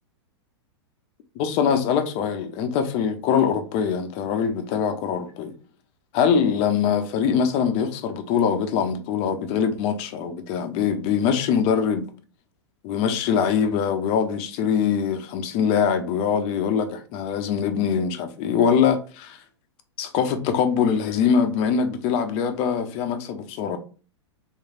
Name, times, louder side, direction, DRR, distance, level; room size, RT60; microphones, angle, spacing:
voice 1, 1.4-5.5 6.1-12.1 12.8-19.4 20.0-23.8, left 7 dB, 40° left, 0.5 m, -23 dB
3.1 x 2.5 x 2.4 m
hypercardioid pair, 105°, 15 cm